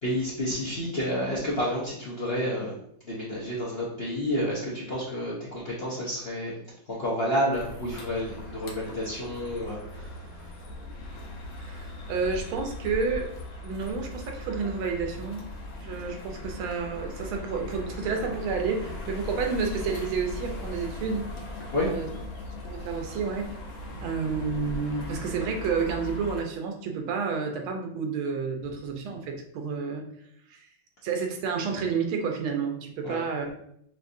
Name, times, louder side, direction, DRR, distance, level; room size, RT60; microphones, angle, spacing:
voice 1, 0.0-2.7 3.0-6.5 6.9-10.6 21.7-21.9 33.0-33.2, equal, 50° left, -7 dB, 0.7 m, -30 dB
sound 1, 7.5-26.4, left 2 dB, 85° left, 1.6 m, -39 dB
voice 2, 11.6-13.3 13.6-15.5 15.8-21.3 21.8-22.1 22.6-23.5 24.0-30.0 30.5-30.7 31.0-33.5, right 5 dB, 90° right, 3 dB, 1.6 m, -30 dB
6.1 x 2.6 x 2.6 m, 0.71 s
omnidirectional pair, 2.2 m